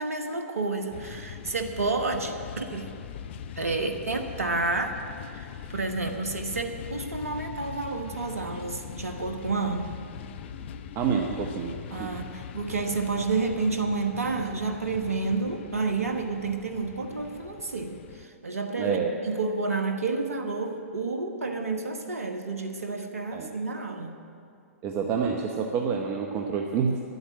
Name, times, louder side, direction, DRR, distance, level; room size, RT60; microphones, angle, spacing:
voice 1, 0.0-2.9 3.6-5.0 5.3-9.9 11.9-19.0 19.2-24.2, right 3 dB, 80° right, 5 dB, 1.3 m, -30 dB
sound 1, 0.9-18.3, left 8 dB, 50° left, 0.6 m, -41 dB
voice 2, 10.9-12.1 18.8-19.1 23.3-23.5 24.8-27.0, right 6 dB, 30° right, 2 dB, 0.9 m, -28 dB
11.0 x 8.0 x 9.7 m, 2.4 s
figure-of-eight pair, 115°, 8 cm